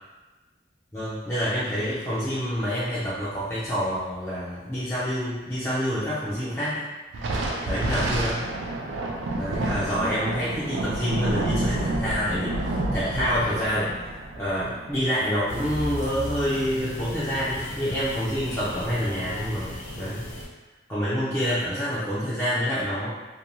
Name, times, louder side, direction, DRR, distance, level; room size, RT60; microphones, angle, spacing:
voice 1, 0.9-6.9 7.6-8.4 9.4-13.9 14.4-20.3 20.9-23.1, equal, 15° left, -11 dB, 0.4 m, -27 dB
Thunder, 7.1-15.9, right 2 dB, 85° right, 0.4 m, -29 dB
sound 1, 15.5-20.4, left 1 dB, 85° left, 0.7 m, -35 dB
2.5 x 2.2 x 2.9 m, 1.1 s
head